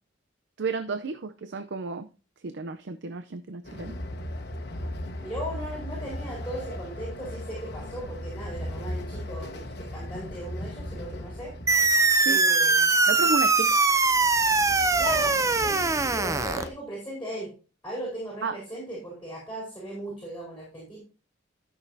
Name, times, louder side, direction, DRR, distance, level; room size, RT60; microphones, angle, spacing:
voice 1, 0.6-2.1 2.4-4.0 12.2-12.4 13.1-13.8 18.4-18.6, right 4 dB, 65° right, 9 dB, 0.6 m, -32 dB
Train, 3.6-12.1 14.0-16.7, left 1 dB, 60° left, 1.2 m, -37 dB
voice 2, 5.2-11.5 12.2-13.0 13.2-13.3 15.0-15.3 15.6-17.5 17.8-21.0, right 1 dB, 10° left, -3 dB, 4.4 m, -37 dB
sound 1, 11.7-16.7, right 3 dB, 15° right, 0.5 m, -22 dB
13.0 x 6.3 x 2.7 m, 0.34 s
head